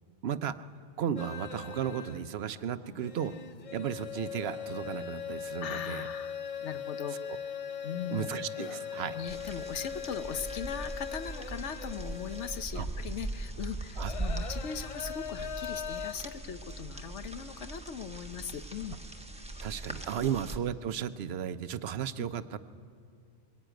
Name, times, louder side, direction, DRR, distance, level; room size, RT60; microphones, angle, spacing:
voice 1, 0.2-0.6 1.0-3.3 3.7-6.0 7.3-7.4 8.1-9.2 12.8-12.9 14.0-14.1 19.6-22.6, right 9 dB, 65° right, 12 dB, 0.9 m, -34 dB
sound 1, 1.2-2.3 2.7-12.7 13.0-13.1 14.0-16.1, left 7 dB, 45° left, 0.5 m, -40 dB
voice 2, 5.6-7.4 7.8-8.4 9.1-19.0 20.2-20.3 22.2-22.3, left 7 dB, 75° left, 10 dB, 1.2 m, -39 dB
sound 2, 9.3-20.6, right 2 dB, 5° right, 1.0 m, -40 dB
22.0 x 16.0 x 9.1 m, 2.5 s
omnidirectional pair, 1.2 m